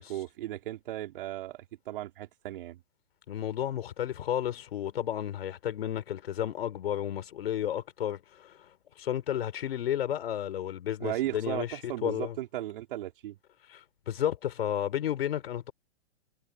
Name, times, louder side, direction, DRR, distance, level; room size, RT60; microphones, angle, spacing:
voice 1, 0.0-2.8 11.0-13.4, right 14 dB, 50° right, 4.5 m, -36 dB
voice 2, 3.3-8.7 9.0-12.4 13.7-15.7, left 10 dB, 60° left, 4.1 m, -32 dB
hypercardioid pair, 135°, 34 cm